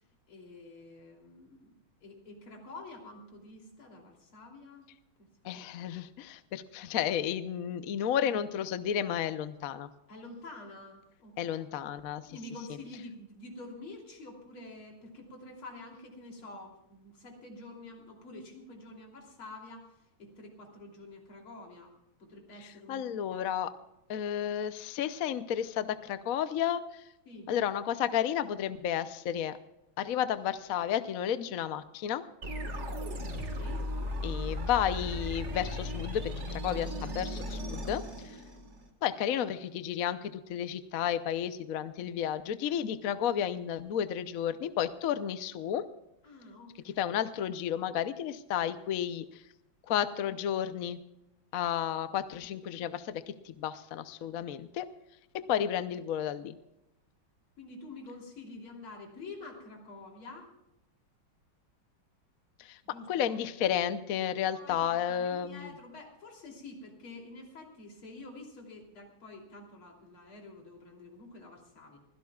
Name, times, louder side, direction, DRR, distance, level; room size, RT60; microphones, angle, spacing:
voice 1, 0.3-4.9 5.2-5.3 5.6-5.7 10.1-11.6 12.2-19.9 20.2-21.9 22.2-23.6 27.3-27.5 33.3-33.9 46.2-47.0 57.6-60.5 62.8-63.4 64.5-72.0, left 2 dB, 85° left, 1 dB, 4.0 m, -48 dB
voice 2, 5.4-9.9 11.4-12.3 22.6-23.7 24.1-27.1 27.5-29.6 30.0-32.2 34.2-38.4 39.0-45.9 46.8-49.4 49.9-51.0 51.5-54.9 55.3-56.6 62.6-62.8 63.1-65.7, left 9 dB, 60° left, 12 dB, 0.9 m, -32 dB
sound 1, 32.4-38.9, left 1 dB, 35° right, 1.8 m, -36 dB
24.5 x 16.5 x 2.4 m, 0.89 s
omnidirectional pair, 2.3 m